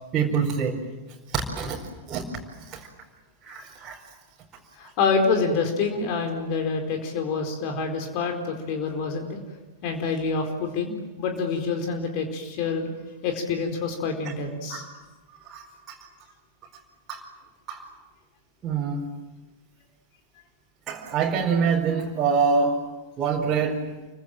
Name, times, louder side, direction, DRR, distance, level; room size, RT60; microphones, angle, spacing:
voice 1, 0.1-0.8 1.3-1.8 2.1-2.2 2.7-2.9 3.4-4.0 14.7-14.9 15.4-16.0 17.1-17.2 17.7-17.8 18.6-19.1 20.9-22.8 23.2-23.8, right 5 dB, 25° right, -4 dB, 4.6 m, -25 dB
voice 2, 4.8-9.4 9.8-12.9 13.2-14.8, left 4 dB, 45° left, 4 dB, 4.4 m, -27 dB
29.5 x 24.5 x 7.7 m, 1.2 s
figure-of-eight pair, 90°, 0 cm